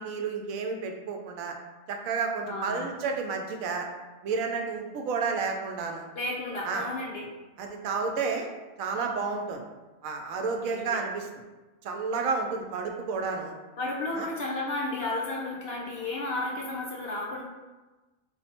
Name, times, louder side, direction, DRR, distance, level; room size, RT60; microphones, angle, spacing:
voice 1, 0.0-1.5 1.9-3.9 4.2-6.1 6.6-6.9 7.6-8.5 8.8-9.6 10.0-11.3 11.8-13.5 14.1-14.3, right 4 dB, 80° right, 3 dB, 1.0 m, -31 dB
voice 2, 2.5-2.9 6.1-7.3 10.6-11.0 13.8-17.4, left 2 dB, 65° left, -2 dB, 0.6 m, -33 dB
3.8 x 2.1 x 4.2 m, 1.2 s
omnidirectional pair, 1.4 m